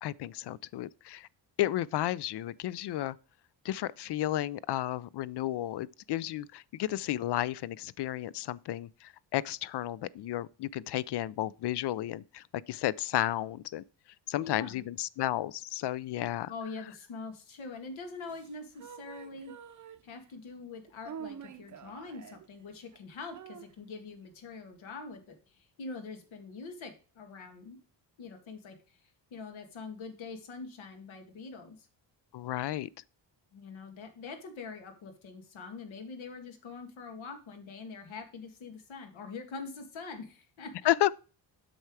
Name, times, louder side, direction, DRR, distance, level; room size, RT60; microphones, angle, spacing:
voice 1, 0.0-1.3 1.6-3.2 3.6-13.8 14.3-16.5 32.3-32.9 40.8-41.1, left 13 dB, 60° left, 0.5 m, -32 dB
voice 2, 14.4-14.8 16.5-19.5 20.0-27.8 28.2-31.9 33.5-40.9, left 4 dB, 85° left, 2.0 m, -44 dB
sound 1, 18.2-20.3 20.9-22.5 22.9-23.0 23.3-23.7, right 8 dB, 40° right, 0.6 m, -47 dB
7.9 x 5.7 x 4.7 m
cardioid pair, 130°, 45 cm